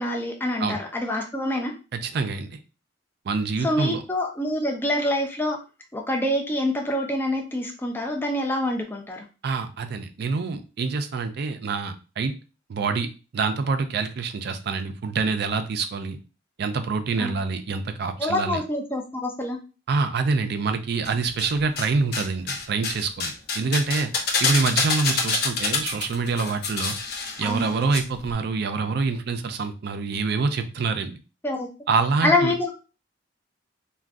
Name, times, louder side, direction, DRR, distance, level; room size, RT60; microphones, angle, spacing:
voice 1, 0.0-1.7 3.6-5.6 5.9-9.2 17.2-17.3 18.2-19.6 27.4-27.7 31.4-31.7 32.2-32.7, left 1 dB, 10° left, 1 dB, 0.4 m, -26 dB
voice 2, 1.9-2.6 3.3-4.0 9.4-12.3 12.7-13.1 13.3-16.2 16.6-18.6 19.9-24.1 24.4-27.0 27.4-31.2 31.9-32.5, right 4 dB, 55° right, 8 dB, 0.4 m, -26 dB
sound 1, 21.0-21.9 22.1-28.0 28.2-28.3, left 4 dB, 55° left, 0.6 m, -27 dB
2.5 x 2.2 x 3.4 m, 0.33 s
head